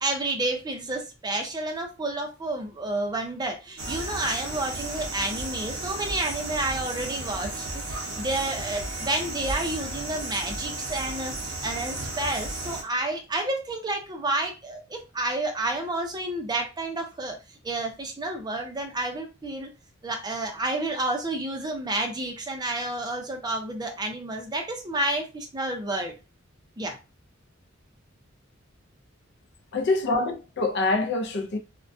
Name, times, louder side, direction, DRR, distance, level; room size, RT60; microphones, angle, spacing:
voice 1, 0.0-17.4 17.6-19.7 20.0-26.1 26.8-27.0, right 2 dB, 20° right, 0.5 m, -30 dB
sound 1, 3.8-12.8, right 2 dB, 70° right, 0.6 m, -34 dB
voice 2, 29.7-31.6, left 2 dB, 60° left, 0.4 m, -25 dB
2.3 x 2.1 x 2.5 m
head